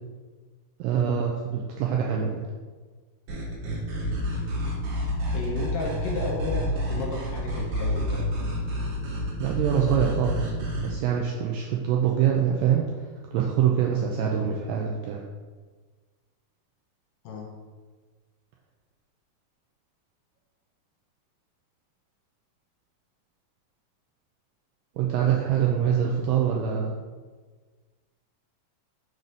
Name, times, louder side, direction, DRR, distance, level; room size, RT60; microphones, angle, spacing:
voice 1, 0.8-2.5 9.4-10.5 10.8-12.9 13.3-15.2 25.0-26.9, right 8 dB, 90° right, -1 dB, 2.0 m, -24 dB
sound 1, 3.3-10.9, equal, 65° right, 2.5 m, -29 dB
voice 2, 5.3-8.2 17.2-17.5, left 2 dB, 70° left, -2 dB, 2.5 m, -32 dB
6.3 x 4.1 x 5.3 m, 1.4 s
omnidirectional pair, 4.6 m